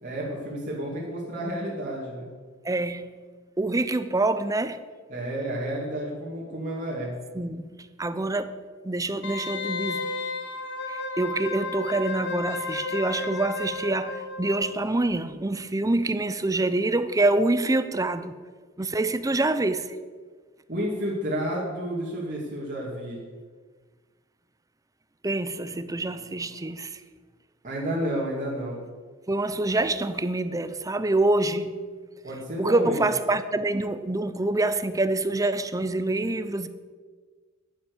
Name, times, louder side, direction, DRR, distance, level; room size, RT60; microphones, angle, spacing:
voice 1, 0.0-2.3 5.1-7.1 20.7-23.2 27.6-28.8 32.2-33.0, equal, 40° right, 2.5 m, -31 dB
voice 2, 2.6-3.1 3.6-4.8 7.3-8.6 8.8-10.2 10.9-18.4 18.8-19.9 25.2-27.0 29.3-31.8 32.6-36.7, right 2 dB, 15° right, 0.6 m, -26 dB
Wind instrument woodwind instrument, 9.2-14.8 15.1-15.2, left 3 dB, 55° left, 1.2 m, -33 dB
10.5 x 10.0 x 6.9 m
head